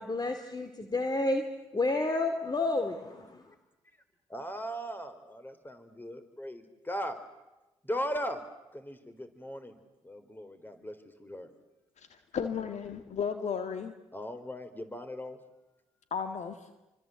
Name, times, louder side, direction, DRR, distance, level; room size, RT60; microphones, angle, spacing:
voice 1, 0.0-1.4 1.7-3.4, left 2 dB, 30° left, 7 dB, 2.7 m, -30 dB
voice 2, 4.3-7.2 7.8-8.4 8.7-9.8 10.0-10.9 11.2-11.5 14.1-15.4, equal, 15° left, 9 dB, 4.3 m, -38 dB
voice 3, 12.3-13.9 16.1-16.6, left 6 dB, 60° left, 8 dB, 1.9 m, -33 dB
27.5 x 25.0 x 8.0 m, 1.0 s
hypercardioid pair, 50°, 13 cm